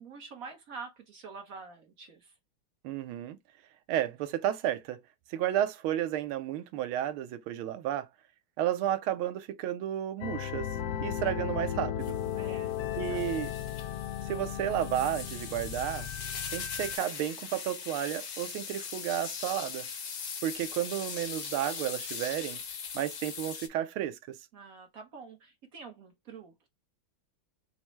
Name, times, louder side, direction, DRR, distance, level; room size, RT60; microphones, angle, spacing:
voice 1, 0.0-2.3 12.3-13.2 24.5-26.7, right 4 dB, 50° right, 1.1 m, -47 dB
voice 2, 2.8-3.4 3.9-5.0 5.3-8.1 8.6-10.7 11.0-12.2 13.0-13.5 14.2-16.1 16.5-19.9 20.4-22.6 22.9-24.4, right 11 dB, 85° right, 1.5 m, -32 dB
sound 1, 10.2-17.0, left 10 dB, 75° left, 0.9 m, -35 dB
sound 2, 12.0-23.7, left 6 dB, 55° left, 1.3 m, -40 dB
5.8 x 2.1 x 3.1 m
omnidirectional pair, 2.3 m